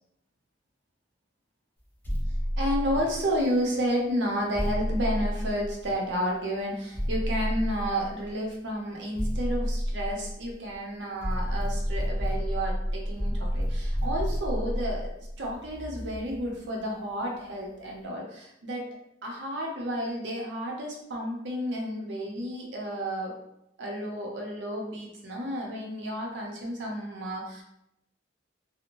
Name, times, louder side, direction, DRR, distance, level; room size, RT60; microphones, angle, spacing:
sound 1, 2.0-3.5 4.5-6.2 6.9-8.3 9.1-10.7 11.2-16.5, equal, 10° left, 0.4 m, -30 dB
voice 1, 2.6-15.1 15.4-18.9 19.2-23.3 23.8-27.6, equal, 70° right, -1 dB, 0.6 m, -31 dB
2.5 x 2.1 x 2.9 m, 0.80 s
head